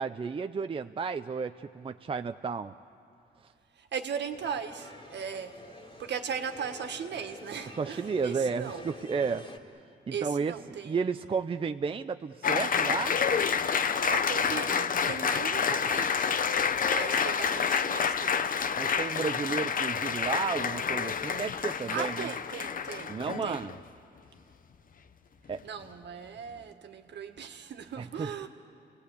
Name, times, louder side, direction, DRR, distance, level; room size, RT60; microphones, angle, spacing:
voice 1, 0.0-2.7 7.8-9.5 10.1-10.5 10.8-13.2 18.8-22.3 23.1-23.8 25.5-25.6 28.0-28.3, right 5 dB, 30° right, 8 dB, 0.5 m, -32 dB
voice 2, 3.7-5.6 6.0-8.9 10.1-11.1 13.7-16.4 16.8-18.5 21.8-23.7 25.6-28.5, right 7 dB, 65° right, 5 dB, 1.7 m, -38 dB
sound 1, 4.3-9.6, left 3 dB, 25° left, 2.4 m, -48 dB
Applause, 12.4-23.8, left 6 dB, 45° left, 0.7 m, -28 dB
29.5 x 18.5 x 8.4 m, 2.8 s
cardioid pair, 105°, 20 cm